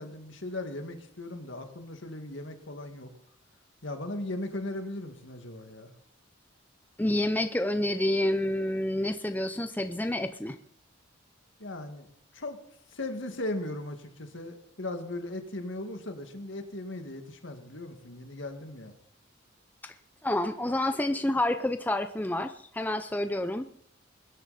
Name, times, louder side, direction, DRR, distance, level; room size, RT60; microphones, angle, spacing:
voice 1, 0.0-3.1 3.8-5.9 11.6-12.1 12.3-12.6 12.9-18.9, left 1 dB, 65° left, 6 dB, 2.0 m, -38 dB
voice 2, 7.0-10.6 19.8-19.9 20.2-23.7, left 1 dB, 10° left, 9 dB, 0.5 m, -28 dB
21.0 x 11.0 x 4.2 m, 0.65 s
head